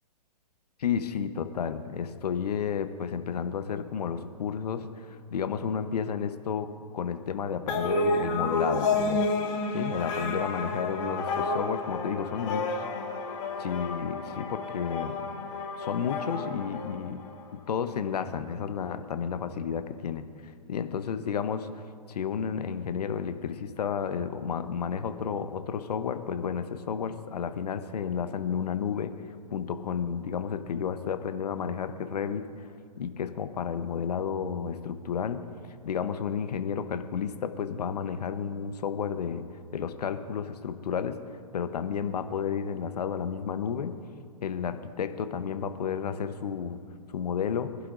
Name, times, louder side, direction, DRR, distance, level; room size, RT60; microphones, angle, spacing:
voice 1, 0.8-9.3 9.7-12.8 13.6-15.2 15.8-17.2 17.7-29.1 29.5-32.7 33.0-35.4 35.8-39.4 39.7-41.2 41.5-44.0 44.4-46.8 47.1-47.7, left 7 dB, 70° left, 10 dB, 1.0 m, -32 dB
sound 1, 7.7-17.5, left 3 dB, 45° left, 2.6 m, -30 dB
23.0 x 11.0 x 2.6 m, 2.3 s
hypercardioid pair, 130°, 21 cm